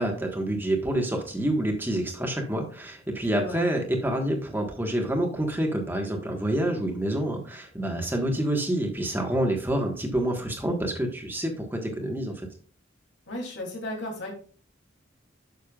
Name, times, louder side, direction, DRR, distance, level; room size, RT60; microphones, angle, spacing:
voice 1, 0.0-12.5, right 1 dB, 10° right, 2 dB, 1.5 m, -27 dB
voice 2, 3.3-3.7 13.3-14.3, equal, 60° left, 0 dB, 3.0 m, -34 dB
10.0 x 6.7 x 2.4 m, 0.43 s
head